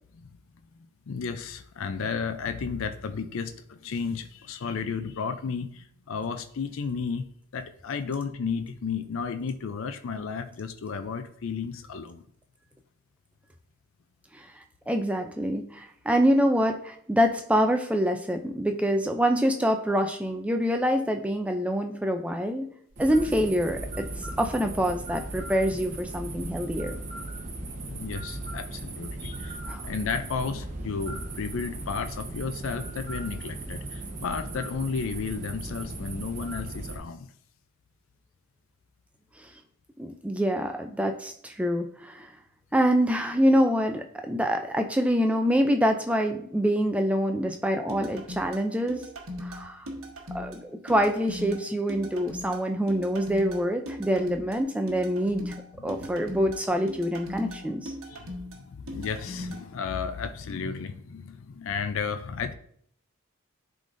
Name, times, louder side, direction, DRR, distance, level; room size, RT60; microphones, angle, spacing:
voice 1, 1.1-7.3 7.5-12.2 27.9-29.6 29.8-37.3 55.8-56.0 58.1-62.5, left 5 dB, 65° left, 9 dB, 0.4 m, -33 dB
voice 2, 14.9-22.7 23.0-24.1 24.4-27.0 29.7-29.8 39.4-39.5 40.0-42.3 42.7-49.0 49.4-49.9 50.3-55.5 55.8-57.9, equal, 5° right, 5 dB, 0.4 m, -25 dB
sound 1, 22.9-37.0, right 2 dB, 35° right, 1.0 m, -37 dB
sound 2, 47.9-59.6, left 1 dB, 70° right, 1.2 m, -39 dB
10.5 x 3.8 x 2.6 m, 0.64 s
head